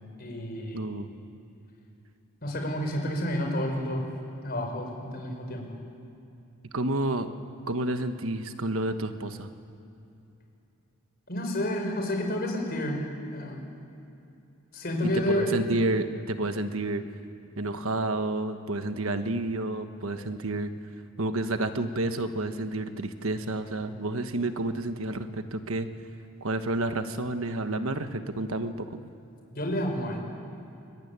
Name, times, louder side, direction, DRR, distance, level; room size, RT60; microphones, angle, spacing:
voice 1, 0.2-0.9 2.4-4.1 4.4-5.7 11.3-13.0 13.3-13.6 14.7-15.6 29.5-30.2, equal, 45° left, 2 dB, 5.3 m, -30 dB
voice 2, 0.7-1.1 6.7-7.3 7.7-9.5 15.0-17.0 17.6-20.7 21.2-25.9 26.4-29.0, right 2 dB, 75° right, 8 dB, 1.3 m, -30 dB
23.0 x 22.5 x 9.7 m, 2.7 s
head